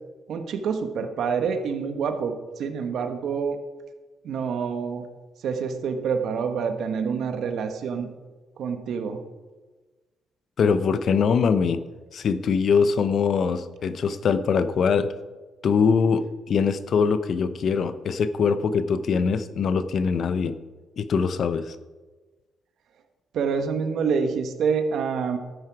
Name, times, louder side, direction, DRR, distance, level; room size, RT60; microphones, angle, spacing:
voice 1, 0.3-3.6 4.2-5.0 5.4-8.1 8.6-9.2 23.3-25.4, right 6 dB, 70° right, 7 dB, 1.3 m, -27 dB
voice 2, 10.6-11.8 12.1-15.1 15.6-20.6 21.0-21.8, left 6 dB, 60° left, 13 dB, 0.7 m, -23 dB
13.5 x 9.2 x 4.8 m, 1.3 s
cardioid pair, 90°, 0 cm